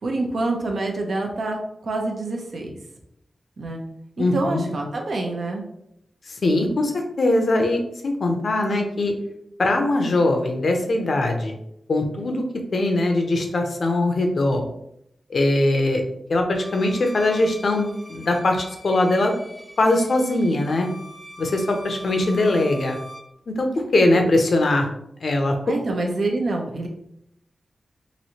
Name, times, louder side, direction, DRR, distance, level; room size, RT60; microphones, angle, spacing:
voice 1, 0.0-2.8 3.6-3.8 4.2-5.7 25.7-26.9, right 2 dB, 70° right, 1 dB, 0.7 m, -26 dB
voice 2, 4.2-4.7 6.3-9.1 9.6-11.6 11.9-12.4 12.7-14.7 15.3-16.0 16.3-19.3 19.8-20.9 21.4-23.0 23.5-24.9 25.2-25.6, left 2 dB, 70° left, 3 dB, 0.6 m, -21 dB
Bowed string instrument, 16.5-23.3, equal, 10° right, 0.6 m, -42 dB
3.1 x 2.6 x 2.8 m, 0.77 s
cardioid pair, 55°, 0 cm